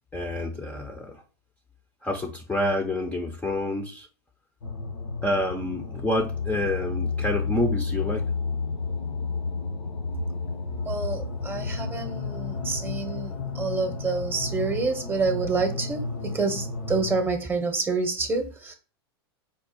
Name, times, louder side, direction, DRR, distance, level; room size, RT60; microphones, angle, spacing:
voice 1, 0.1-1.2 2.0-4.1 5.2-8.3, left 1 dB, 10° left, 3 dB, 0.7 m, -28 dB
sound 1, 4.6-17.2, left 4 dB, 80° left, 1.4 m, -31 dB
voice 2, 10.8-13.3 13.5-18.7, right 4 dB, 15° right, 6 dB, 0.9 m, -28 dB
4.5 x 2.4 x 4.2 m, 0.35 s
hypercardioid pair, 110°, 14 cm